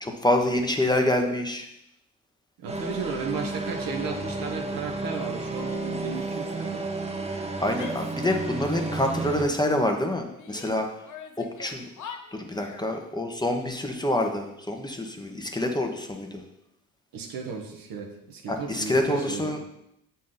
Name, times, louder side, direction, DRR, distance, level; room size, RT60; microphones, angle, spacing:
voice 1, 0.0-1.7 7.6-10.9 11.4-11.8 12.3-16.4 18.5-19.6, left 1 dB, 10° left, 3 dB, 1.1 m, -26 dB
voice 2, 2.6-6.9 17.1-19.6, right 5 dB, 65° right, 2 dB, 1.3 m, -35 dB
sound 1, 2.7-9.5, right 2 dB, 15° right, 1.1 m, -32 dB
Female speech woman speaking / Yell, 7.8-9.0 9.2-10.7 11.0-12.9, left 6 dB, 55° left, 1.1 m, -43 dB
7.4 x 4.2 x 4.0 m, 0.80 s
hypercardioid pair, 50°, 37 cm